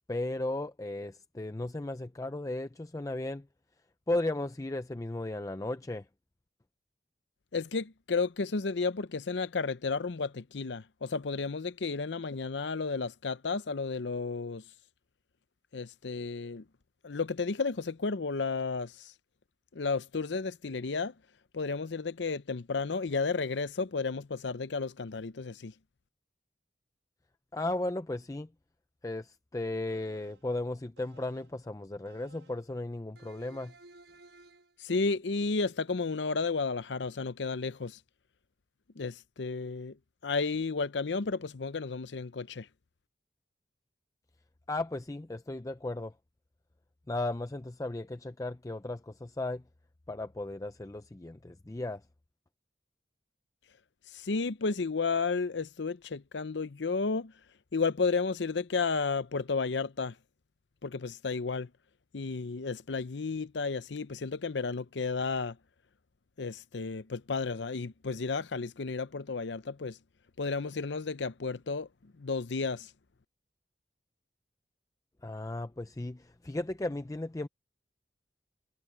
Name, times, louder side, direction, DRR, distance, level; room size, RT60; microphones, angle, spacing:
voice 1, 0.1-3.5 4.1-6.1 27.5-28.5 29.0-33.7 44.7-46.1 47.1-49.6 50.1-52.0 75.2-77.5, left 2 dB, 20° left, 0.5 m, -35 dB
voice 2, 7.5-14.6 15.7-16.6 17.0-19.1 19.7-21.1 21.5-25.7 34.8-38.0 39.0-40.0 40.2-42.7 54.1-57.3 57.7-60.1 60.8-61.7 62.1-65.6 66.4-70.0 70.4-72.9, left 4 dB, 85° left, 0.7 m, -32 dB
sound 1, 29.9-30.5 31.0-31.6 32.1-32.7 33.2-34.8, right 2 dB, 80° right, 6.8 m, -57 dB
head